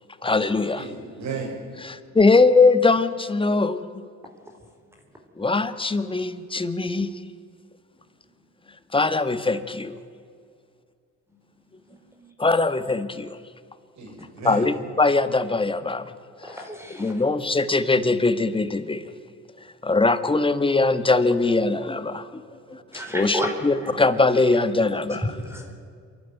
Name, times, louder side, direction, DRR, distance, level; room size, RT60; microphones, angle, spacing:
voice 1, 0.2-0.9 1.8-4.0 5.4-7.3 8.9-10.0 12.4-13.4 14.4-16.1 17.0-19.1 19.8-22.4 22.7-22.8 23.1-25.2, left 3 dB, 15° left, 11 dB, 1.4 m, -21 dB
voice 2, 0.8-1.6 14.0-14.7 22.5-22.6 25.2-25.4, right 5 dB, 65° right, 2 dB, 6.2 m, -34 dB
voice 3, 11.9-12.3 16.4-17.2 22.9-23.5 23.8-23.9 25.2-25.7, equal, 10° right, 3 dB, 4.2 m, -32 dB
27.5 x 12.0 x 9.4 m, 2.2 s
cardioid pair, 90°, 30 cm